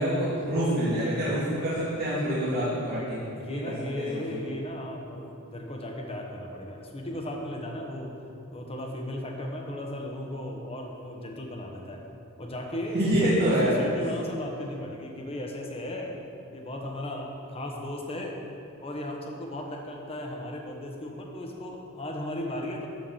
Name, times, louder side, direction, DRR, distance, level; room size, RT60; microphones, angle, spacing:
voice 1, 0.0-3.2 3.5-4.2 12.9-13.9, equal, 45° right, -11 dB, 2.6 m, -26 dB
voice 2, 3.4-8.1 8.5-12.0 12.4-13.3 13.6-16.1 16.5-18.4 18.8-22.9, left 1 dB, 25° left, 0 dB, 1.2 m, -36 dB
13.0 x 4.7 x 7.2 m, 2.6 s
head